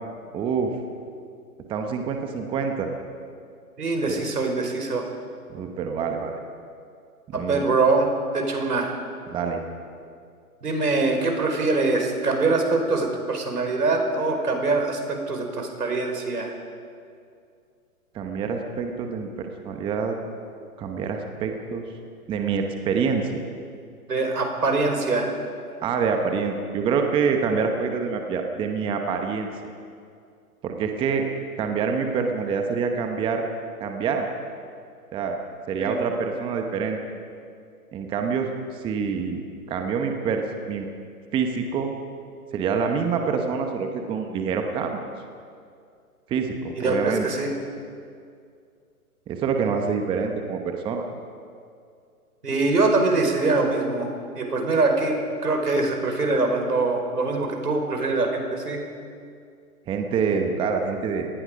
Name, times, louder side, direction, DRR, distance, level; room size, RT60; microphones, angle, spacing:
voice 1, 0.3-0.7 1.7-2.9 4.1-4.2 5.5-6.3 7.3-7.7 9.3-9.6 18.1-20.1 20.8-21.8 22.3-23.3 25.8-29.5 30.6-31.2 31.6-33.5 33.8-34.3 35.1-35.4 35.7-37.0 37.9-39.4 39.7-40.9 41.3-41.9 42.5-45.0 46.3-47.3 49.3-51.1 59.9-61.3, right 5 dB, 10° right, 4 dB, 1.0 m, -26 dB
voice 2, 3.8-5.1 7.3-8.1 8.3-8.9 10.6-16.5 24.1-25.4 35.8-36.0 46.7-47.5 52.4-54.1 54.3-58.8, right 3 dB, 85° right, 3 dB, 5.1 m, -23 dB
28.5 x 19.0 x 5.2 m, 2.3 s
hypercardioid pair, 140°, 45 cm